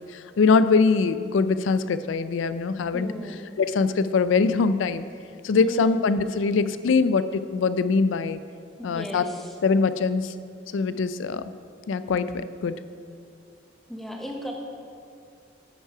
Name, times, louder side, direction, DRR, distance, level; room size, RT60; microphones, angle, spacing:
voice 1, 0.1-3.1 3.6-5.0 5.4-8.4 8.8-9.2 9.6-10.3 10.7-11.4 11.9-12.8, left 4 dB, 80° left, 13 dB, 0.4 m, -22 dB
voice 2, 2.9-3.5 5.6-6.0 8.8-9.6 13.9-14.5, equal, ahead, 0 dB, 0.9 m, -36 dB
10.5 x 5.5 x 4.8 m, 2.3 s
head